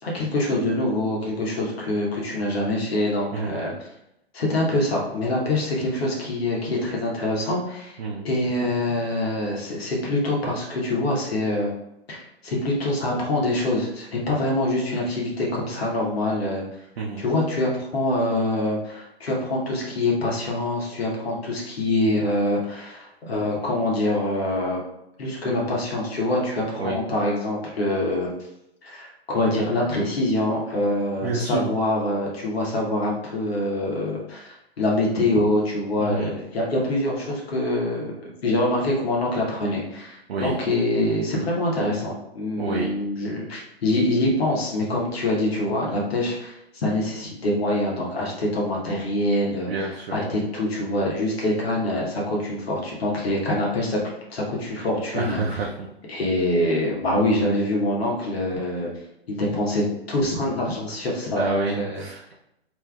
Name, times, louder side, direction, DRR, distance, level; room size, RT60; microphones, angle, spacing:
voice 1, 0.0-3.7 4.3-8.0 8.2-11.7 12.1-16.6 17.2-24.8 25.2-28.3 28.8-38.1 38.4-54.0 54.3-55.4 56.1-58.9 59.3-62.0, left 1 dB, 70° left, -3 dB, 1.0 m, -25 dB
voice 2, 31.2-31.7 36.0-36.3 40.3-40.6 42.6-42.9 49.7-50.4 55.1-55.9 61.4-62.3, right 3 dB, 65° right, -2 dB, 0.6 m, -28 dB
3.4 x 2.7 x 2.2 m, 0.85 s
figure-of-eight pair, 115°, 31 cm